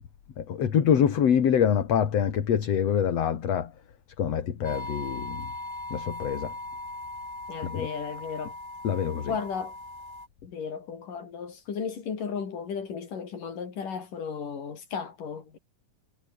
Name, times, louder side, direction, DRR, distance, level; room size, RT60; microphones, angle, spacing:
voice 1, 0.4-3.7 4.2-5.5 5.9-6.5 7.6-7.9 8.8-9.3, left 8 dB, 50° left, 3.0 m, -25 dB
sound 1, 4.6-10.3, left 2 dB, 10° left, 1.5 m, -39 dB
voice 2, 7.5-8.6 9.3-9.8 10.4-15.6, left 6 dB, 70° left, 5.3 m, -35 dB
omnidirectional pair, 4.0 m